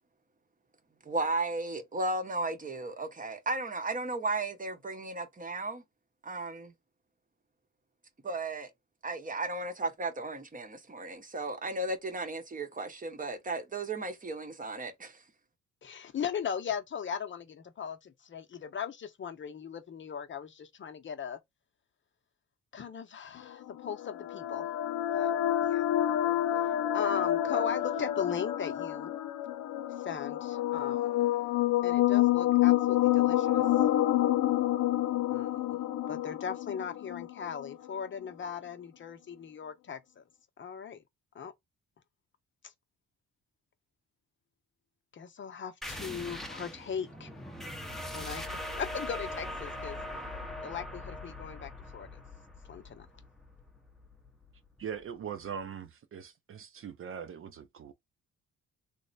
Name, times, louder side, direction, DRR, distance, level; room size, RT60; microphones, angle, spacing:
voice 1, 1.1-5.8 6.2-6.7 8.2-8.7 9.0-15.2, right 2 dB, 25° right, 0.9 m, -35 dB
voice 2, 15.8-21.4 22.7-24.7 25.1-25.3 25.6-25.9 26.6-29.1 30.0-31.3 31.8-33.6 35.3-35.8 36.1-40.2 40.6-41.0 41.3-41.5 42.6-42.7 45.1-47.3 48.1-50.0 50.6-52.2 52.7-53.1, left 7 dB, 40° left, 0.6 m, -38 dB
sound 1, 23.6-37.7, left 13 dB, 80° left, 0.6 m, -28 dB
sound 2, 45.8-55.0, left 1 dB, ahead, 0.7 m, -41 dB
voice 3, 54.8-57.9, right 7 dB, 45° right, 0.5 m, -41 dB
3.2 x 2.0 x 3.9 m
cardioid pair, 90°, 30 cm